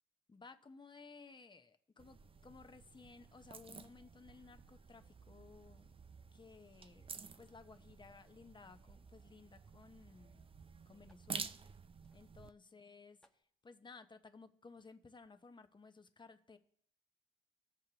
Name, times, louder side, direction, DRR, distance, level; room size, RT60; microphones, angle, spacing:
voice 1, 0.3-5.9 6.3-10.4 10.9-11.6 12.1-13.2 13.6-16.6, left 4 dB, 25° left, 8 dB, 0.9 m, -58 dB
sound 1, 2.0-12.5, right 5 dB, 25° right, 0.5 m, -51 dB
sound 2, 8.7-9.0 9.9-10.0 10.2-10.3 11.0-11.3 12.0-12.2 12.7-12.8 13.2-13.5, equal, 5° left, 1.1 m, -74 dB
19.5 x 6.6 x 2.9 m, 0.66 s
cardioid pair, 90°, 20 cm